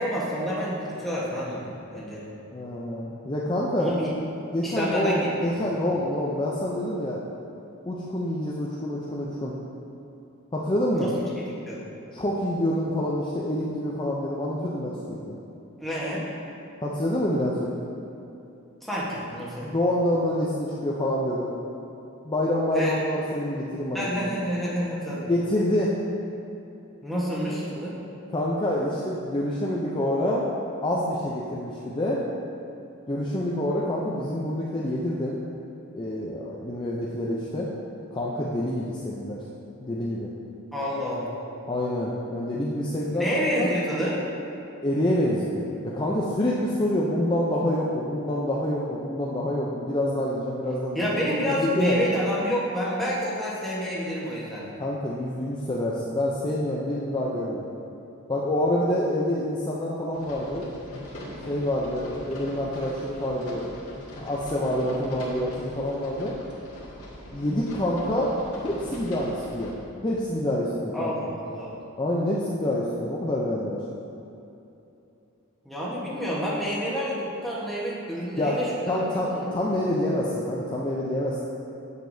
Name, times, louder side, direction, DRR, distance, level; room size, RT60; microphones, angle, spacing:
voice 1, 0.0-2.2 3.8-4.1 4.6-5.6 10.9-11.1 11.7-11.8 15.8-16.3 18.8-19.7 22.7-23.0 23.9-25.3 27.0-27.9 40.7-41.3 43.1-44.2 50.9-54.7 70.9-71.8 75.6-79.5, equal, ahead, -7 dB, 1.2 m, -28 dB
voice 2, 2.5-3.9 4.5-7.2 7.9-9.5 10.5-11.1 12.1-15.3 16.8-17.7 19.6-21.5 22.2-24.3 25.3-25.9 28.3-30.5 30.8-32.2 33.1-35.4 35.9-37.7 38.1-39.4 39.8-40.3 41.7-43.3 43.6-43.7 44.8-51.1 51.5-52.0 54.8-57.7 58.3-60.7 61.4-63.7 64.2-66.3 67.3-69.7 70.0-71.3 72.0-73.8 78.4-78.6 78.9-81.4, left 1 dB, 20° left, -5 dB, 0.5 m, -27 dB
rain on car roof, 60.1-69.8, left 1 dB, 90° left, 1.7 m, -41 dB
9.1 x 6.7 x 2.7 m, 2.8 s
head